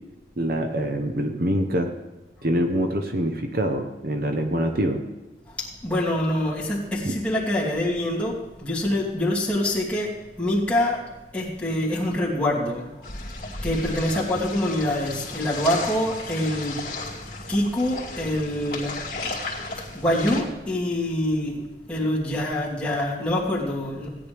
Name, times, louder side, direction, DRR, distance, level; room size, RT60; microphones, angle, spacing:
voice 1, 0.4-1.9 2.4-5.0 7.0-7.1, right 1 dB, 55° right, 5 dB, 0.9 m, -25 dB
voice 2, 5.5-11.1 11.3-12.9 13.6-16.8 17.5-18.9 19.3-19.4 19.7-21.6 21.9-24.2, left 1 dB, 5° left, -7 dB, 2.6 m, -25 dB
sound 1, 13.0-20.4, left 3 dB, 55° left, 2.3 m, -34 dB
17.0 x 10.0 x 3.4 m, 1.1 s
head